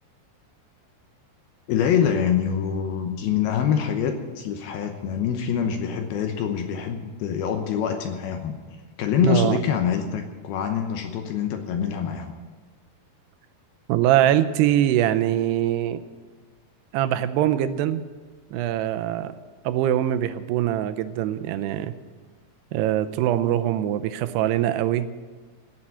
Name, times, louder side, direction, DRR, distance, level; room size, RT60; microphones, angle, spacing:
voice 1, 1.7-8.6 9.0-12.3, left 8 dB, 75° left, 5 dB, 2.7 m, -25 dB
voice 2, 9.2-9.6 13.9-16.0 16.9-18.0 18.5-19.3 19.6-21.9 22.7-25.1, right 12 dB, 90° right, 11 dB, 2.7 m, -23 dB
16.0 x 7.5 x 9.7 m, 1.4 s
omnidirectional pair, 4.7 m